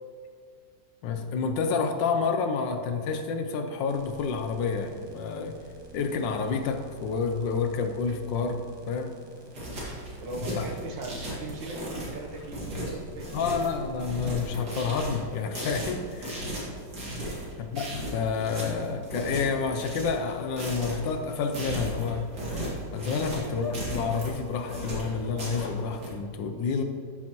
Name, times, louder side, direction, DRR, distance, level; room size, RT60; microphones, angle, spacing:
voice 1, 1.0-5.6 5.9-8.6 8.9-9.1 10.5-10.7 13.3-16.4 17.6-22.3 22.9-26.8, left 5 dB, 85° left, 6 dB, 1.5 m, -29 dB
sound 1, 3.9-14.4, right 1 dB, 25° right, 0.5 m, -49 dB
sound 2, 9.3-26.1, right 1 dB, 60° right, 2.7 m, -36 dB
voice 2, 10.2-13.4 17.2-17.5 23.2-23.5 26.5-26.8, right 2 dB, 80° right, 1 dB, 1.8 m, -40 dB
sound 3, 20.3-26.0, left 4 dB, 70° left, 0.6 m, -43 dB
12.5 x 6.3 x 3.0 m, 2.3 s
omnidirectional pair, 2.0 m